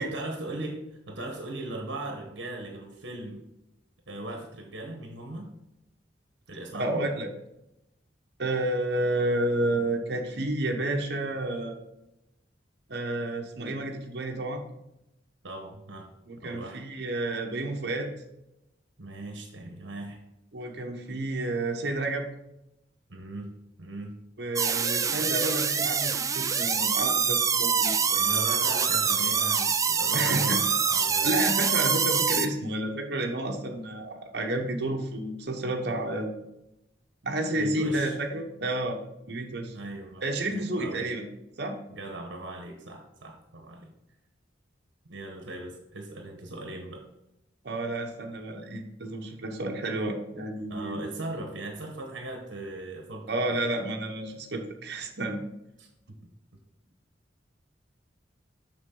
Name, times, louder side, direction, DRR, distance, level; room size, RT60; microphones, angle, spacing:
voice 1, 0.0-3.4 4.1-5.5 6.5-7.0 15.4-16.1 16.4-16.8 19.0-20.2 23.1-23.5 23.8-24.1 28.2-31.4 37.6-38.2 39.7-40.2 40.5-41.1 41.9-43.9 45.0-47.0 50.7-53.6 55.8-56.2, right 2 dB, 80° right, 2 dB, 1.1 m, -38 dB
voice 2, 6.8-7.3 8.4-11.8 12.9-14.6 16.3-18.1 20.5-22.3 24.4-28.4 30.1-30.6 31.2-36.3 37.2-39.0 39.3-39.8 40.2-41.3 41.6-41.8 47.6-51.0 53.3-55.4, right 1 dB, 60° right, 2 dB, 1.0 m, -30 dB
sound 1, 24.6-32.5, right 6 dB, 20° right, 0.4 m, -25 dB
7.0 x 6.1 x 3.8 m, 0.88 s
head